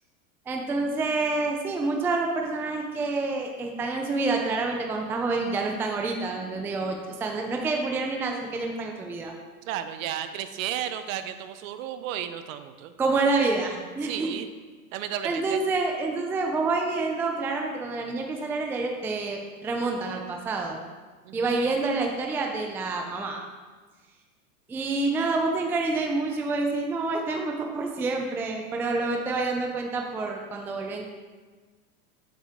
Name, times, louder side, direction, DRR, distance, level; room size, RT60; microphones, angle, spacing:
voice 1, 0.5-9.3 13.0-14.3 15.2-20.8 21.3-23.4 24.7-31.1, right 3 dB, 5° right, 2 dB, 0.4 m, -28 dB
voice 2, 9.7-12.9 14.0-14.5 14.9-15.6 21.2-21.7, right 10 dB, 60° right, 10 dB, 0.8 m, -33 dB
9.0 x 7.6 x 3.5 m, 1.4 s
supercardioid pair, 130°, 46 cm